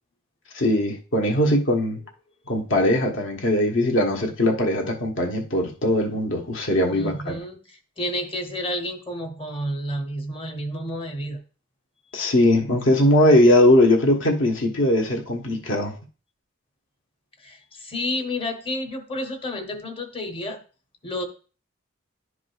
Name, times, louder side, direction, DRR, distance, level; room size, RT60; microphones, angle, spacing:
voice 1, 0.5-2.0 2.5-7.3 12.1-15.9, left 1 dB, 60° left, 1.1 m, -20 dB
voice 2, 6.9-11.4 17.4-20.6 21.0-21.2, left 1 dB, 25° left, 0.9 m, -30 dB
11.0 x 4.8 x 2.3 m
head